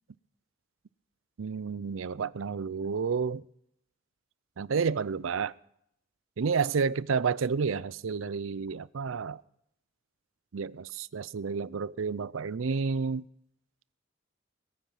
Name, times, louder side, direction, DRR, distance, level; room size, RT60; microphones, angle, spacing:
voice 1, 1.4-3.4 4.6-5.5 6.4-9.4 10.5-13.2, right 5 dB, 80° right, 20 dB, 0.5 m, -30 dB
21.0 x 9.2 x 5.8 m, 0.74 s
head